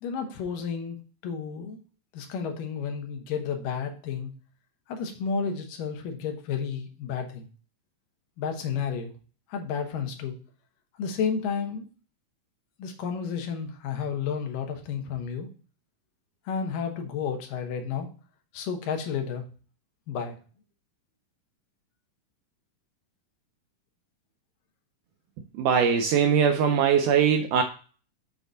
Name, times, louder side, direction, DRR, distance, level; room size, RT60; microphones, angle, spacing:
voice 1, 0.0-1.8 2.1-4.3 4.9-7.5 8.4-9.1 9.5-10.4 11.0-11.9 12.8-15.5 16.5-18.1 18.5-19.4 20.1-20.4, left 6 dB, 75° left, 4 dB, 2.6 m, -31 dB
voice 2, 25.6-27.6, right 7 dB, 80° right, 5 dB, 1.9 m, -21 dB
7.2 x 3.9 x 3.9 m, 0.38 s
omnidirectional pair, 4.0 m